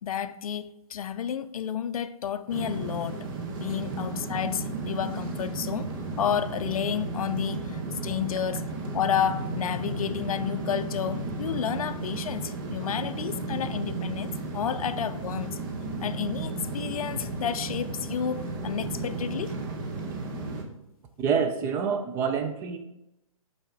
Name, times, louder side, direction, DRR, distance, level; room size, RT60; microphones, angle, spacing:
voice 1, 0.0-5.9 6.2-15.6 16.0-19.6, left 8 dB, 80° left, 0.4 m, -31 dB
sound 1, 2.5-20.6, right 3 dB, 35° right, 1.0 m, -34 dB
voice 2, 21.2-22.8, right 6 dB, 15° right, 0.4 m, -27 dB
5.8 x 4.1 x 4.5 m
hypercardioid pair, 150°, 18 cm